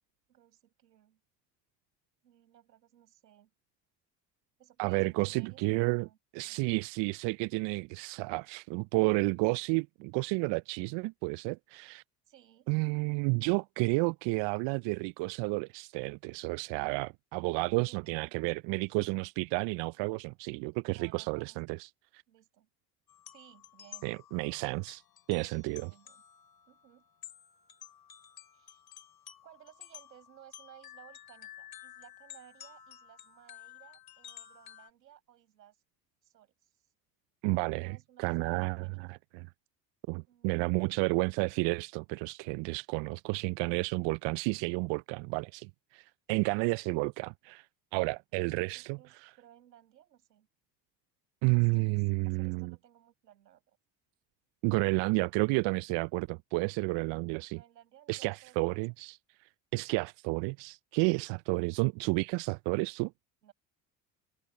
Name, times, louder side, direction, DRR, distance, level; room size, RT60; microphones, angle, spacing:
voice 1, 0.3-1.2 2.2-3.5 4.6-6.2 6.4-6.7 12.3-12.7 17.7-18.8 20.9-21.8 22.3-22.7 23.3-24.1 25.7-26.2 26.7-27.1 28.5-28.8 29.4-35.8 36.2-36.9 37.7-39.0 40.3-41.0 48.7-50.5 51.5-52.0 52.2-53.8 57.5-58.8 63.4-63.5, right 11 dB, 90° right, 7.8 m, -59 dB
voice 2, 4.8-6.1 6.3-12.0 12.7-22.2 24.0-25.0 25.3-25.9 37.4-39.5 40.1-47.7 47.9-49.3 51.4-52.7 54.6-57.6 58.1-59.2 59.7-63.1, right 28 dB, 60° right, 0.6 m, -31 dB
sound 1, 23.1-34.9, left 11 dB, 50° left, 2.3 m, -52 dB
hypercardioid pair, 60°, 48 cm